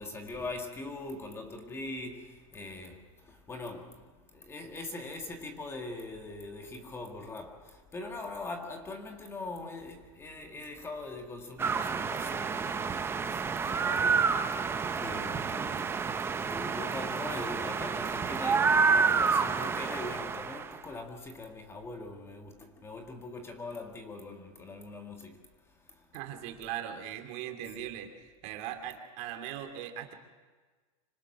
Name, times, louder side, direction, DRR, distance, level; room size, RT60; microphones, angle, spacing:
voice 1, 0.0-25.4 25.8-26.0 27.8-27.9, left 2 dB, 15° left, 1.8 m, -42 dB
sound 1, 11.6-20.8, right 5 dB, 15° right, 0.8 m, -29 dB
voice 2, 26.1-30.1, right 11 dB, 50° right, 2.8 m, -39 dB
26.0 x 19.0 x 6.0 m
supercardioid pair, 150°, 18 cm